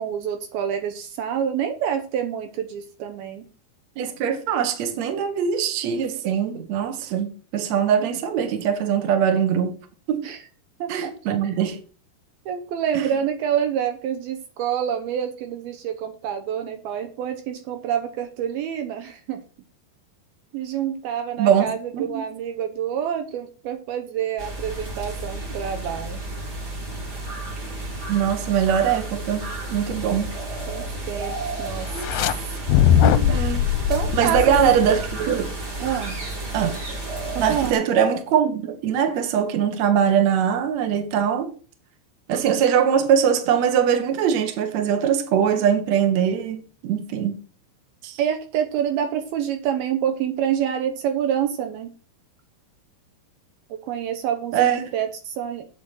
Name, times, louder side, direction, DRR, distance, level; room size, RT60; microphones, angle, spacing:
voice 1, 0.0-3.5 10.2-10.4 10.8-11.1 12.5-19.4 20.5-26.2 30.7-31.9 33.0-33.3 33.9-34.5 35.8-36.2 37.3-37.8 48.2-51.9 53.7-55.7, right 9 dB, 75° right, 2.7 m, -27 dB
voice 2, 4.0-9.8 10.1-10.3 10.9-11.8 12.9-13.1 21.4-22.2 28.1-29.4 29.7-30.3 33.3-33.7 34.1-35.5 36.5-36.8 37.4-41.5 42.3-47.4 48.0-48.2 54.5-54.9, right 8 dB, 55° right, 2.3 m, -22 dB
sound 1, 24.4-37.7, right 2 dB, 30° right, 2.7 m, -32 dB
sound 2, 31.9-32.3 32.7-35.2, left 10 dB, 80° left, 2.2 m, -20 dB
8.6 x 7.1 x 6.2 m
omnidirectional pair, 4.6 m